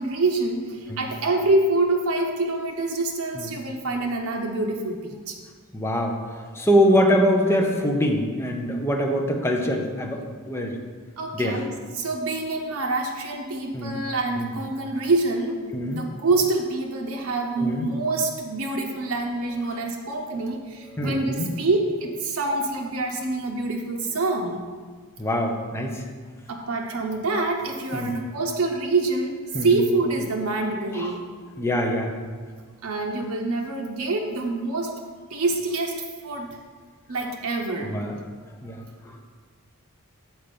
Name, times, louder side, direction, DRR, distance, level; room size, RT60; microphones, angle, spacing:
voice 1, 0.0-5.4 11.2-24.6 26.5-29.3 29.6-31.2 32.8-35.0 35.3-35.9 36.2-36.5 37.1-37.9, right 2 dB, 75° right, 1 dB, 0.8 m, -26 dB
voice 2, 5.7-10.8 11.3-11.6 13.7-14.0 14.4-14.5 15.7-16.1 17.6-17.9 18.7-18.8 20.9-21.5 25.2-26.0 27.9-28.2 29.5-29.7 30.9-31.2 31.6-32.1 37.8-38.2 38.6-39.2, equal, 10° left, 1 dB, 0.7 m, -24 dB
7.0 x 4.4 x 5.2 m, 1.6 s
head